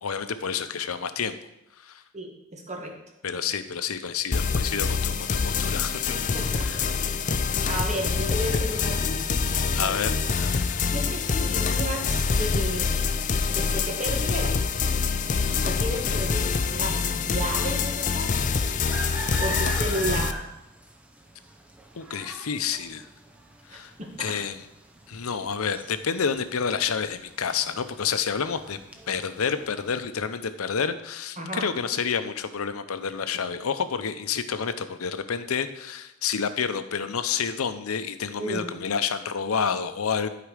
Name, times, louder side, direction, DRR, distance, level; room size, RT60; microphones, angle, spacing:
voice 1, 0.0-1.4 1.8-2.0 3.2-6.2 6.5-6.8 9.7-10.8 16.1-16.2 19.3-19.6 21.9-23.1 23.7-23.9 24.2-24.6 25.1-28.8 29.1-40.3, left 6 dB, 85° left, 11 dB, 0.7 m, -29 dB
voice 2, 2.1-2.9 3.4-3.5 6.3-9.2 9.8-10.0 10.9-13.0 13.5-14.6 15.6-18.8 19.1-20.4 23.7-24.4 31.4-31.7 38.4-38.7, right 1 dB, 35° right, 2 dB, 1.5 m, -33 dB
sound 1, 4.3-20.3, left 5 dB, 35° left, 0.4 m, -25 dB
sound 2, 11.2-30.1, right 2 dB, 5° right, 0.7 m, -43 dB
11.5 x 4.9 x 5.0 m, 0.86 s
head